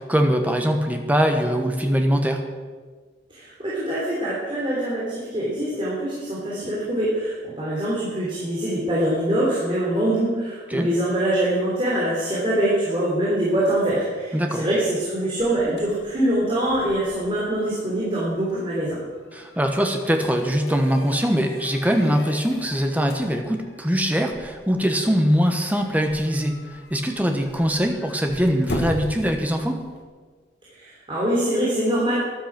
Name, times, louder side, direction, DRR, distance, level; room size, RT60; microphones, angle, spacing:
voice 1, 0.0-2.4 10.7-10.9 14.3-14.6 19.3-26.6 26.9-29.8, equal, 10° right, 4 dB, 1.2 m, -22 dB
voice 2, 3.3-19.0 30.7-32.1, right 1 dB, 25° right, -7 dB, 3.3 m, -24 dB
sound 1, 15.0-30.0, left 1 dB, 60° left, 1.7 m, -40 dB
13.0 x 11.5 x 6.0 m, 1.5 s
head